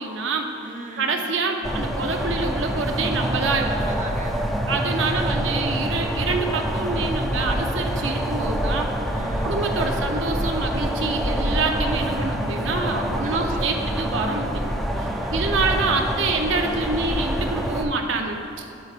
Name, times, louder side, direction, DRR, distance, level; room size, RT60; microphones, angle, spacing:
voice 1, 0.0-0.5 1.0-3.9 4.7-8.9 9.4-18.6, right 3 dB, 75° right, 3 dB, 0.7 m, -26 dB
voice 2, 0.6-1.2 3.6-5.7 9.1-9.6 13.2-14.1 15.1-15.5, right 2 dB, 40° right, 1 dB, 0.7 m, -39 dB
sound 1, 1.6-17.9, equal, ahead, 0.4 m, -26 dB
11.0 x 7.8 x 2.5 m, 2.7 s
head